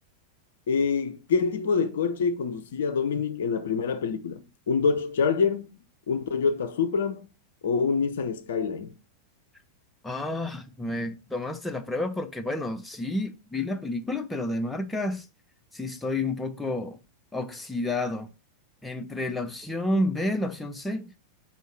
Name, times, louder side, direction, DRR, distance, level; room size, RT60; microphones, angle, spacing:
voice 1, 0.7-5.8 6.1-7.3 7.6-8.9, left 5 dB, 60° left, 0.4 m, -26 dB
voice 2, 10.0-15.3 15.7-17.0 17.3-18.3 18.8-21.1, left 2 dB, 5° left, 0.6 m, -30 dB
4.3 x 2.7 x 4.4 m
figure-of-eight pair, 90°, 0 cm